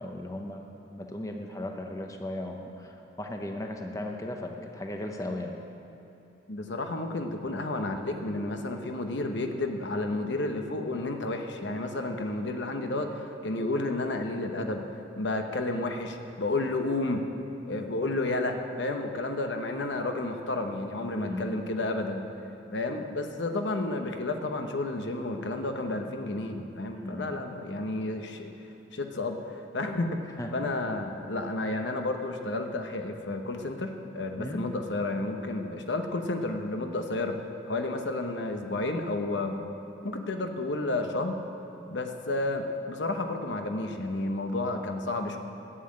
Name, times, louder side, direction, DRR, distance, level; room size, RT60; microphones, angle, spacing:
voice 1, 0.0-5.5 7.5-7.7 21.2-21.6 26.9-27.4 30.4-30.5 34.4-34.7, left 1 dB, 15° left, 3 dB, 0.7 m, -37 dB
voice 2, 6.5-14.9 15.2-17.2 17.7-22.2 22.7-28.5 28.9-37.4 37.7-39.6 40.0-41.4 41.9-45.4, left 2 dB, 75° left, 5 dB, 0.9 m, -31 dB
11.5 x 7.4 x 8.7 m, 2.9 s
head